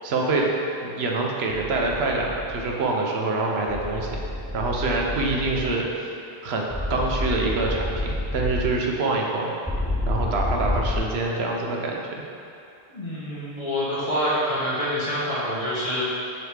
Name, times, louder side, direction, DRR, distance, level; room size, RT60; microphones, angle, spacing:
voice 1, 0.0-0.5 0.8-4.2 4.5-6.1 6.4-9.5 10.1-12.2, right 3 dB, 85° right, -1 dB, 1.0 m, -25 dB
sound 1, 1.5-2.7 3.7-5.7 6.7-8.7 9.7-11.0, left 1 dB, ahead, 0.4 m, -29 dB
voice 2, 12.9-16.0, equal, 35° left, -9 dB, 1.4 m, -26 dB
5.1 x 4.0 x 4.7 m, 2.6 s
omnidirectional pair, 1.0 m